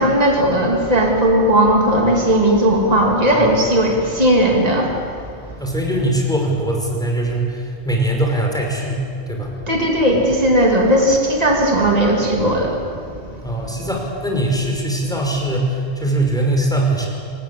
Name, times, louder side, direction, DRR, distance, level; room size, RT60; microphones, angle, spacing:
voice 1, 0.0-5.0 9.7-12.8, right 1 dB, 35° right, 0 dB, 3.1 m, -16 dB
voice 2, 5.6-9.5 13.4-17.1, right 1 dB, 5° left, -1 dB, 5.6 m, -21 dB
26.5 x 19.5 x 8.6 m, 2.3 s
omnidirectional pair, 1.2 m